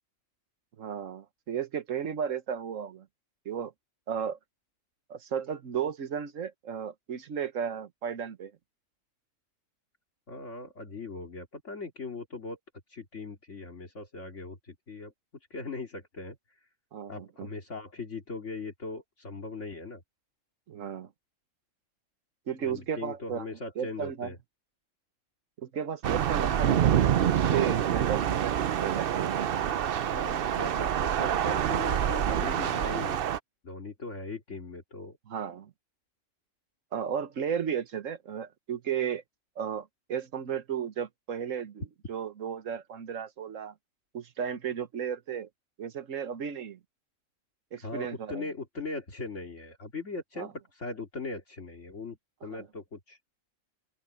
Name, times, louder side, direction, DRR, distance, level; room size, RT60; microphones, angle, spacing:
voice 1, 0.8-3.1 3.4-3.7 4.1-4.4 5.1-8.5 16.9-17.5 20.7-21.1 22.5-23.5 23.8-24.3 25.6-28.5 28.8-29.4 35.3-35.7 36.9-39.2 39.6-41.8 42.1-43.7 44.1-45.5 45.8-46.8 47.7-48.5 50.4-50.5 52.5-52.7, right 8 dB, 80° right, 1.5 m, -34 dB
voice 2, 10.3-12.6 12.9-15.1 15.5-16.4 17.1-20.0 22.6-24.4 30.1-33.2 33.6-35.2 47.8-52.2 52.4-53.2, left 3 dB, 65° left, 2.9 m, -39 dB
Thunder / Rain, 26.0-33.4, right 9 dB, 55° right, 0.7 m, -26 dB
open air
omnidirectional pair, 1.3 m